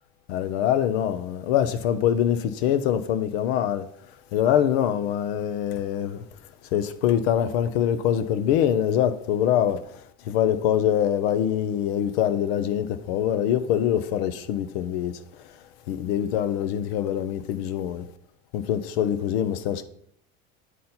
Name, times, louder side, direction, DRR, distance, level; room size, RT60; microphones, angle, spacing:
voice 1, 0.3-3.9 4.3-6.2 6.7-9.8 10.3-15.2 15.9-18.0 18.5-19.8, left 10 dB, 85° left, 0.7 m, -24 dB
9.3 x 4.0 x 4.3 m
supercardioid pair, 125°, 30 cm